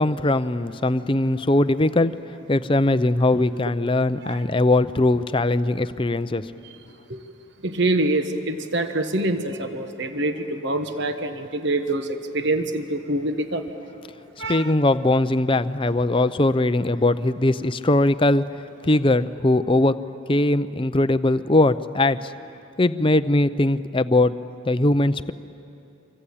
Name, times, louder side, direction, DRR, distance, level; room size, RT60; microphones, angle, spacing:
voice 1, 0.0-2.1 2.5-6.4 14.4-18.4 18.8-19.9 20.3-22.3 22.8-24.3 24.7-25.3, left 2 dB, 25° left, 13 dB, 0.6 m, -20 dB
voice 2, 7.6-13.6 14.4-14.7, right 2 dB, 55° right, 7 dB, 1.3 m, -25 dB
27.0 x 24.5 x 8.6 m, 2.8 s
head